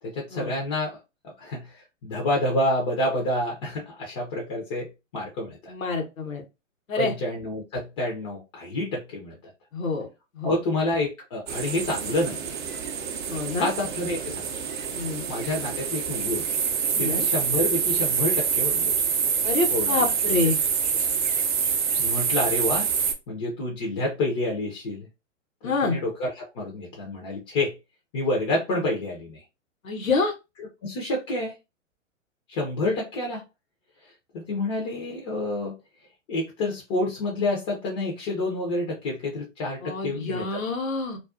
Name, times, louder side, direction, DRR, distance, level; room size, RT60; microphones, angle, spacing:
voice 1, 0.0-1.0 1.4-5.7 7.0-9.5 10.4-12.6 13.6-14.5 15.3-16.6 17.0-18.9 19.7-20.1 22.0-22.9 23.3-25.1 25.6-27.7 28.1-29.4 30.6-31.5 32.5-33.4 34.3-35.8 36.3-40.6, left 1 dB, 20° left, 0.4 m, -28 dB
voice 2, 5.7-6.4 6.9-7.1 9.7-10.1 10.4-10.5 13.3-13.7 14.9-15.2 16.9-17.2 19.4-20.6 25.6-26.0 29.8-30.3 39.8-41.2, left 3 dB, 80° left, 0.9 m, -27 dB
sound 1, 11.5-23.1, right 6 dB, 40° right, 0.5 m, -26 dB
2.3 x 2.2 x 2.3 m
figure-of-eight pair, 120°, 40 cm